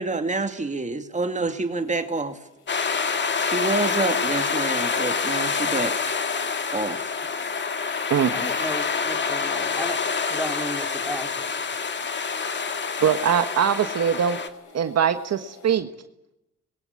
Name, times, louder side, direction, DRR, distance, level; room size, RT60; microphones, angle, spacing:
voice 1, 0.0-2.4 3.4-5.9 6.7-7.1, right 3 dB, 25° right, 7 dB, 2.4 m, -27 dB
sound 1, 1.4-15.8, left 6 dB, 85° left, 4.7 m, -48 dB
sound 2, 2.7-14.5, left 5 dB, 35° left, 2.1 m, -27 dB
voice 2, 8.3-10.0 10.3-11.6, equal, 5° left, 5 dB, 3.4 m, -34 dB
voice 3, 13.0-14.4 14.7-15.9, right 8 dB, 55° right, 8 dB, 1.5 m, -22 dB
24.5 x 22.0 x 9.7 m, 0.91 s
cardioid pair, 90°, 30 cm